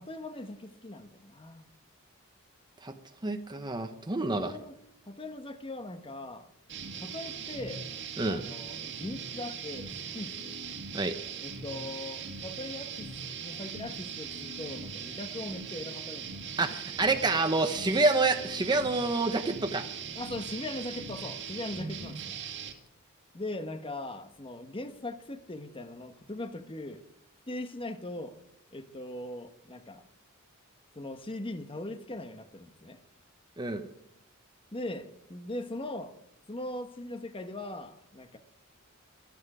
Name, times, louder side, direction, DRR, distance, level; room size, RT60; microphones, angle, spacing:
voice 1, 0.0-1.7 4.3-4.8 5.1-6.5 7.0-7.9 8.2-10.6 11.4-13.1 13.4-16.4 20.1-22.4 23.3-27.0 27.5-28.3 28.7-30.1 30.9-33.0 34.7-36.1 36.5-38.4, left 1 dB, 25° left, 1.2 m, -40 dB
voice 2, 3.2-4.5 8.2-8.4 10.9-11.1 16.6-19.8 33.6-33.8, right 3 dB, 20° right, 1.0 m, -28 dB
sound 1, 6.7-22.7, right 6 dB, 55° right, 2.0 m, -40 dB
23.5 x 9.0 x 4.9 m
head